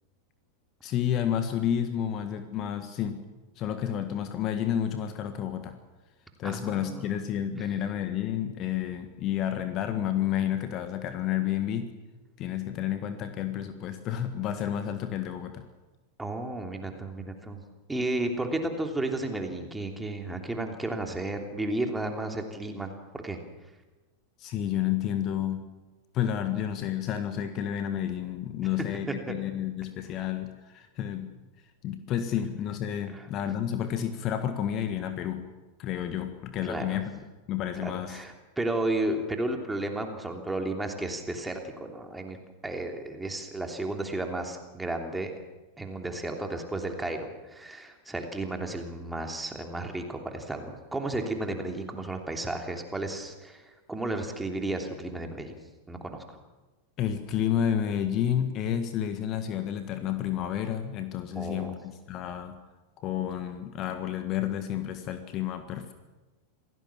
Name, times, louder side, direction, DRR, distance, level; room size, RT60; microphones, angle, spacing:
voice 1, 0.8-3.2 3.6-5.7 6.4-11.9 12.4-15.6 24.4-25.7 26.1-31.3 31.8-35.5 35.8-37.1 37.5-38.2 57.0-62.6 63.0-65.9, left 10 dB, 35° left, 9 dB, 1.6 m, -30 dB
voice 2, 6.4-7.1 7.6-7.7 16.2-17.6 17.9-23.4 29.1-29.3 33.1-33.3 36.6-37.0 37.8-42.4 42.6-45.3 45.8-55.5 55.9-56.4 61.3-61.7, right 2 dB, 5° right, 3 dB, 3.2 m, -33 dB
27.0 x 17.5 x 7.2 m, 1.2 s
figure-of-eight pair, 90°, 0 cm